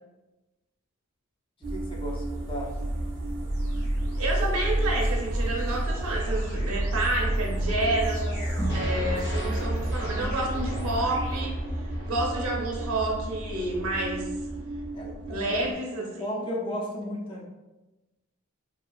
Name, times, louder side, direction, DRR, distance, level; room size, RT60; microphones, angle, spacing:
sound 1, 1.6-15.7, right 1 dB, 55° right, 0.4 m, -30 dB
voice 1, 1.7-2.7 14.9-15.7 16.0-17.4, equal, 25° left, -2 dB, 0.4 m, -35 dB
sound 2, 2.4-11.4, equal, 70° left, 1.2 m, -44 dB
voice 2, 4.1-8.5 8.7-11.5 11.8-14.3 15.2-16.4, right 2 dB, 90° right, -2 dB, 0.7 m, -29 dB
sound 3, 8.6-12.9, right 1 dB, 55° left, 0.9 m, -39 dB
2.8 x 2.4 x 2.3 m, 1.1 s
head